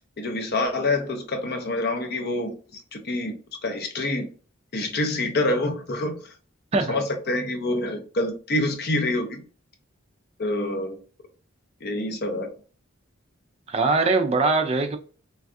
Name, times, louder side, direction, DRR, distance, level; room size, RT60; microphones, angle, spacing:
voice 1, 0.0-4.3 4.7-6.3 6.9-9.4 10.4-11.0 11.8-12.5, left 2 dB, 50° left, 0.6 m, -27 dB
voice 2, 13.7-15.0, right 3 dB, 30° right, 0.4 m, -22 dB
3.2 x 2.3 x 2.6 m
head